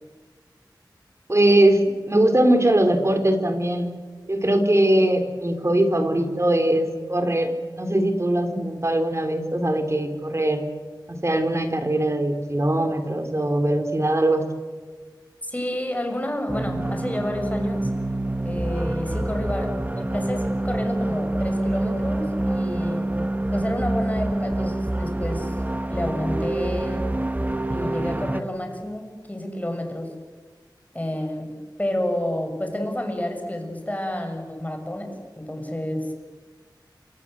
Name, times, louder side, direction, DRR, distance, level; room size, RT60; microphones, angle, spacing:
voice 1, 1.3-1.8 2.1-3.9 4.3-10.6 11.1-14.4, right 1 dB, 35° right, 7 dB, 4.0 m, -21 dB
voice 2, 15.5-17.9 18.4-25.5 25.9-27.1 27.7-30.1 30.9-31.5 31.8-35.1 35.4-36.1, left 1 dB, 20° left, 4 dB, 6.5 m, -29 dB
sound 1, 16.5-28.4, right 1 dB, 20° right, 1.5 m, -26 dB
28.5 x 26.0 x 7.9 m, 1.4 s
wide cardioid pair, 70°, 8 cm